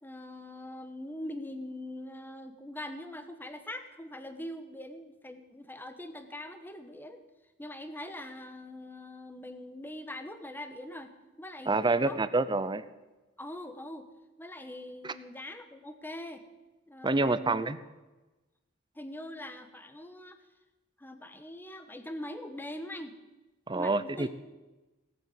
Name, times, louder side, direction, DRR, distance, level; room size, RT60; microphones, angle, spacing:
voice 1, 0.0-7.2 7.6-11.1 11.4-12.2 13.4-14.1 14.4-16.4 16.9-17.6 18.9-20.4 21.0-23.2 23.7-24.3, left 1 dB, 10° left, 8 dB, 1.2 m, -42 dB
voice 2, 11.7-12.8 15.0-15.1 17.0-17.8 23.7-24.3, right 3 dB, 20° right, 14 dB, 0.7 m, -27 dB
18.0 x 8.8 x 8.5 m, 1.1 s
head